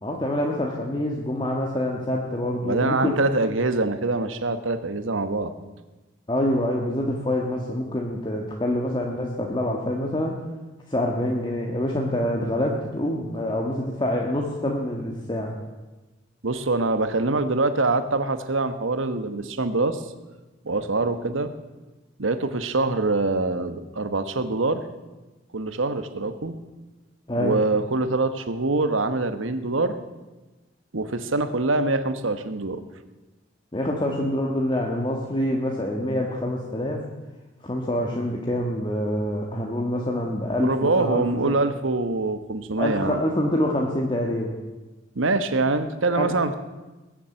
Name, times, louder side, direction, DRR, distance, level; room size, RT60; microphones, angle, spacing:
voice 1, 0.0-3.1 6.3-10.4 10.9-15.5 27.3-27.6 33.7-37.0 37.6-41.6 42.8-44.5 46.1-46.4, left 1 dB, 25° left, 0 dB, 1.5 m, -26 dB
voice 2, 2.6-5.5 16.4-20.0 20.6-21.5 22.2-24.8 25.5-26.5 27.4-30.0 30.9-32.8 40.6-43.2 45.1-46.5, right 3 dB, 85° right, 10 dB, 1.2 m, -24 dB
20.5 x 7.4 x 8.8 m, 1.1 s
head